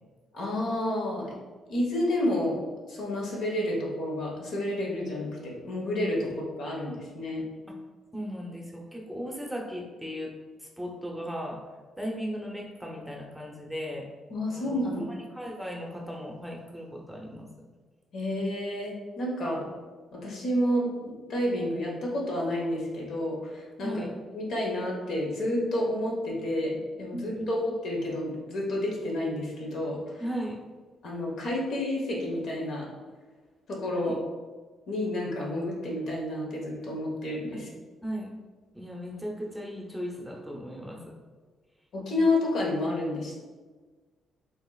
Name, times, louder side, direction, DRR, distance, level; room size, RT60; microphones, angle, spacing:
voice 1, 0.3-1.3 1.7-2.6 2.9-6.3 6.6-7.4 14.3-15.0 18.1-19.7 20.1-24.0 24.3-30.2 31.0-32.9 33.7-34.1 34.9-37.7 41.9-43.4, left 1 dB, 70° left, -2 dB, 1.1 m, -30 dB
voice 2, 8.1-10.3 10.6-11.6 12.0-14.1 14.5-17.5 23.8-24.1 27.1-27.5 30.2-30.6 33.9-34.2 38.0-38.3 38.7-41.1, equal, ahead, -1 dB, 0.7 m, -37 dB
5.3 x 2.9 x 2.3 m, 1.4 s
cardioid pair, 90°, 0 cm